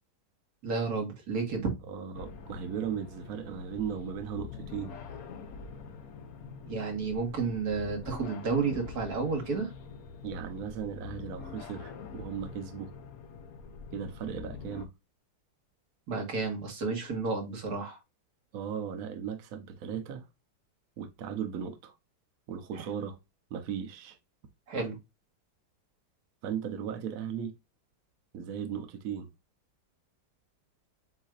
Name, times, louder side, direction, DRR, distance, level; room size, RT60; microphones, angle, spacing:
voice 1, 0.6-1.7 6.7-9.7 16.1-18.0 24.7-25.0, right 4 dB, 45° right, 2.0 m, -31 dB
voice 2, 1.9-4.9 10.2-12.9 13.9-14.9 18.5-20.2 21.0-21.9 22.5-23.2 23.5-24.2 26.4-27.5 28.3-29.3, right 8 dB, 70° right, 0.8 m, -37 dB
sound 1, 2.1-14.9, left 6 dB, 65° left, 0.9 m, -45 dB
8.0 x 2.8 x 2.4 m
omnidirectional pair, 2.3 m